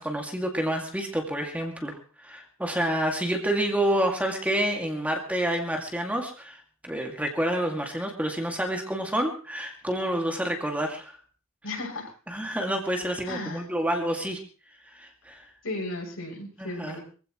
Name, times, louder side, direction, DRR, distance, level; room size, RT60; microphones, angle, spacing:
voice 1, 0.0-11.2 12.3-14.4 14.9-15.5 16.6-17.0, right 1 dB, 5° right, 2 dB, 2.3 m, -28 dB
voice 2, 11.6-12.2 13.2-13.7 15.6-17.0, left 2 dB, 80° left, 0 dB, 6.9 m, -35 dB
24.0 x 15.5 x 3.1 m, 0.37 s
head